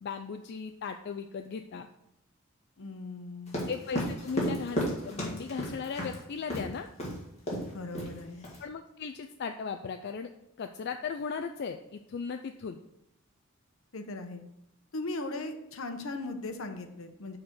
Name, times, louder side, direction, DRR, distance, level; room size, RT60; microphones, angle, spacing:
voice 1, 0.0-1.9 3.7-6.9 8.6-10.3 10.6-12.8, left 5 dB, 55° left, 6 dB, 0.4 m, -37 dB
voice 2, 2.8-3.7 7.7-8.5 13.9-14.4 14.9-17.4, left 2 dB, 75° left, 7 dB, 0.9 m, -38 dB
sound 1, 3.5-6.2 6.5-6.7 7.0-7.2 7.5-7.7 7.9-8.6, equal, 35° left, 2.0 m, -33 dB
6.6 x 4.3 x 6.6 m, 0.83 s
head